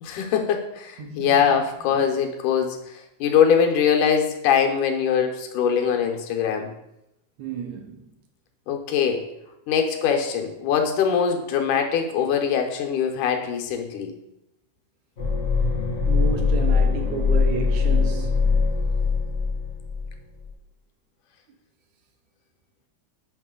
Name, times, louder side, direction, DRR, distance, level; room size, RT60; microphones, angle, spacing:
voice 1, 0.0-6.7 8.7-9.2 9.7-14.1, left 7 dB, 90° left, 2.3 m, -22 dB
voice 2, 1.0-1.5 7.4-8.0 16.1-18.4, right 5 dB, 75° right, 1.8 m, -31 dB
sound 1, 15.2-20.2 20.4-20.5, left 4 dB, 45° left, 0.8 m, -22 dB
6.3 x 5.6 x 3.7 m
omnidirectional pair, 3.4 m